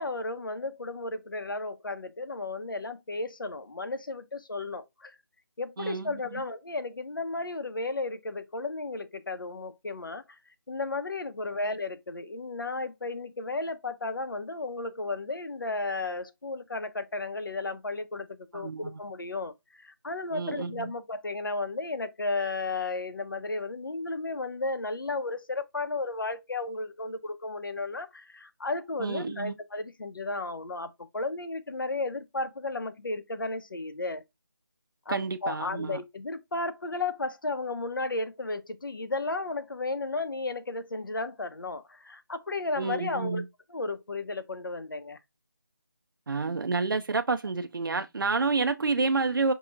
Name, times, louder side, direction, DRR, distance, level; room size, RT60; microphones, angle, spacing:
voice 1, 0.0-5.2 5.6-10.4 10.7-34.2 35.1-43.4 43.7-45.2, left 3 dB, 70° left, 0.8 m, -34 dB
voice 2, 5.8-6.4 18.5-18.9 20.3-20.9 29.0-29.6 35.1-36.0 42.8-43.4 46.3-49.5, right 4 dB, 70° right, 0.4 m, -29 dB
5.3 x 2.9 x 2.3 m
figure-of-eight pair, 175°, 12 cm